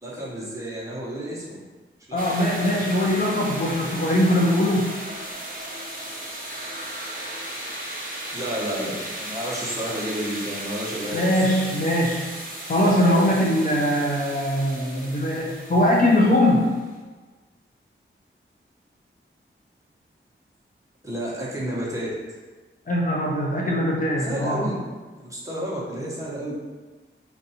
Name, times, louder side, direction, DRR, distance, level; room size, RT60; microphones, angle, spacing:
voice 1, 0.0-1.6 2.1-2.2 8.3-11.4 21.0-22.1 24.2-24.8 25.1-26.5, equal, 15° right, -6 dB, 0.9 m, -31 dB
voice 2, 2.1-5.0 11.1-12.4 12.7-16.8 22.9-24.7, left 1 dB, 40° left, -3 dB, 0.5 m, -21 dB
sound 1, 2.2-16.9, right 1 dB, 40° right, 0.7 m, -35 dB
4.4 x 2.6 x 2.8 m, 1.3 s
wide cardioid pair, 90°, 21 cm